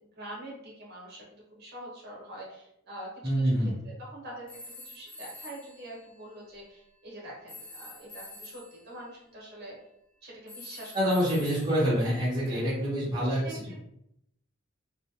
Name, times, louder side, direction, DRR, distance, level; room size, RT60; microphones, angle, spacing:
voice 1, 0.0-9.8 10.2-11.1 12.5-12.7 13.4-13.5, right 1 dB, 55° right, -4 dB, 0.9 m, -45 dB
voice 2, 3.2-3.7 10.9-13.8, equal, 20° right, -8 dB, 0.8 m, -26 dB
sound 1, 4.5-6.7 7.5-8.9 10.5-12.2, left 2 dB, 5° left, 0.4 m, -47 dB
2.2 x 2.0 x 2.8 m, 0.76 s
head